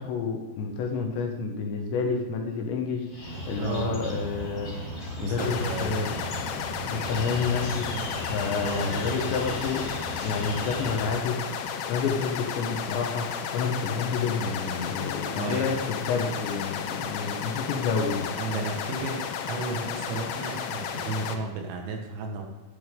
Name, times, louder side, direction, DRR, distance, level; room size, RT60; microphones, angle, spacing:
voice 1, 0.0-4.7 5.2-6.2 6.9-7.9 8.2-9.9 10.2-11.4 11.9-13.3 13.5-18.3, left 5 dB, 75° left, 2 dB, 3.3 m, -29 dB
sound 1, 3.1-11.0, equal, 35° left, 1.2 m, -36 dB
voice 2, 3.6-4.2 5.2-6.3 8.6-9.0 15.3-15.7 18.4-19.2 19.5-22.4, right 4 dB, 70° right, 2 dB, 3.6 m, -33 dB
sound 2, 5.4-21.4, left 7 dB, 90° left, 3.4 m, -33 dB
11.5 x 11.0 x 3.7 m, 1.3 s
omnidirectional pair, 5.5 m